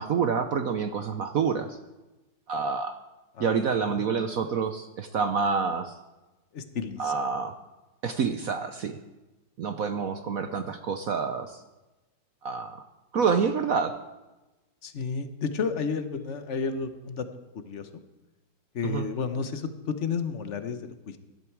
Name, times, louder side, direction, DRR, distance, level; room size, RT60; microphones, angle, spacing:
voice 1, 0.0-1.8 2.5-3.0 3.4-5.9 7.0-7.5 8.0-9.0 9.6-11.6 12.4-12.8 13.1-13.9 18.8-19.0, right 5 dB, 65° right, 8 dB, 0.9 m, -27 dB
voice 2, 6.5-7.2 14.8-17.3 17.5-17.9 18.7-21.2, left 5 dB, 45° left, 10 dB, 1.0 m, -32 dB
17.0 x 12.5 x 4.6 m, 1.1 s
omnidirectional pair, 2.2 m